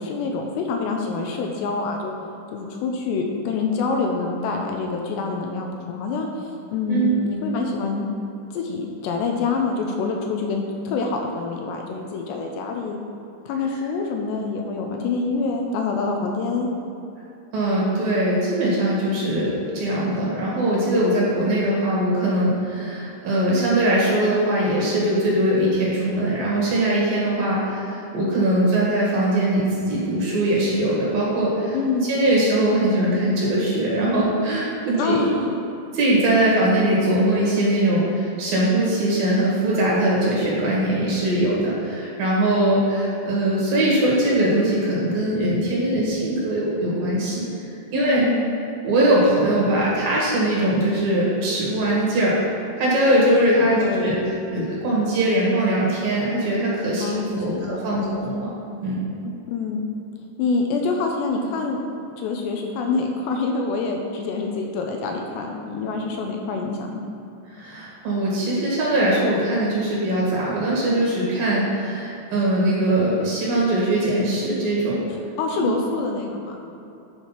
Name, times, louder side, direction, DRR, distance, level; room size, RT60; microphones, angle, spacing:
voice 1, 0.0-2.1 2.5-8.1 8.5-13.0 13.5-16.7 23.5-23.7 31.7-32.1 35.0-35.6 36.3-36.5 45.9-46.1 47.9-48.4 53.7-54.2 57.0-58.2 59.2-59.9 60.4-61.8 62.2-67.0 75.4-76.6, left 4 dB, 85° left, 2 dB, 2.7 m, -26 dB
voice 2, 17.5-31.8 32.0-35.2 35.9-47.4 47.9-48.2 48.8-52.4 52.8-54.2 54.5-58.5 58.8-59.0 67.5-75.0 75.6-75.7, right 1 dB, 60° right, -5 dB, 3.0 m, -21 dB
9.7 x 4.8 x 5.9 m, 2.8 s
omnidirectional pair, 5.2 m